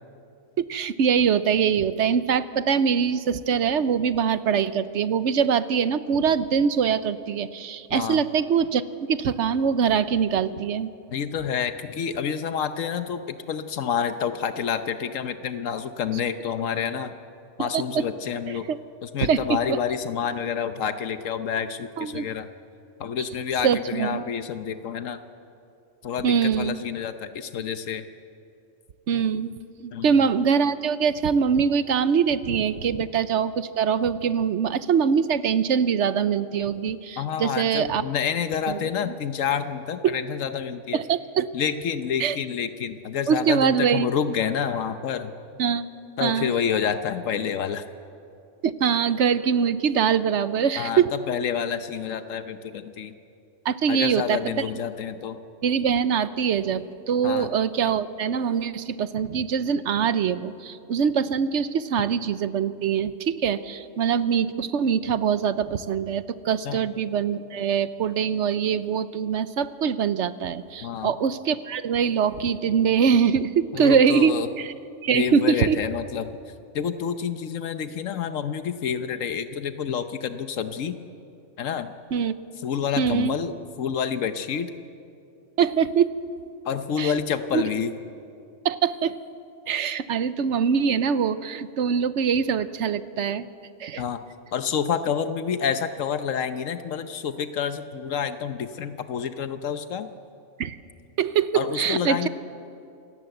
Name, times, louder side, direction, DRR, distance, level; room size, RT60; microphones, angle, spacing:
voice 1, 0.6-10.9 17.6-18.0 18.7-18.8 19.2-19.8 22.0-22.3 23.6-24.2 26.2-26.8 29.1-29.5 29.8-38.0 38.7-39.1 40.0-40.2 40.9-41.5 42.2-42.4 43.3-44.1 45.6-45.9 46.2-46.5 48.6-51.1 53.6-54.4 55.6-74.7 75.0-75.8 82.1-82.3 83.0-83.3 85.6-86.1 87.0-87.1 87.5-87.6 88.6-89.1 89.7-93.5 93.8-94.0 100.6-100.8 101.2-102.3, right 7 dB, 70° right, 14 dB, 1.0 m, -23 dB
voice 2, 7.9-8.2 11.1-17.1 17.6-18.7 19.0-22.5 23.0-25.2 26.0-28.0 29.9-30.2 37.2-41.0 41.5-45.3 46.2-47.8 50.8-53.1 53.9-55.4 57.2-57.5 66.7-66.8 70.8-71.1 73.7-74.5 75.1-76.3 76.7-81.0 81.6-81.9 82.6-84.7 86.6-87.9 94.0-94.2 94.5-100.1 101.5-102.3, left 7 dB, 85° left, 10 dB, 1.2 m, -28 dB
27.5 x 17.5 x 7.9 m, 2.6 s
omnidirectional pair, 1.3 m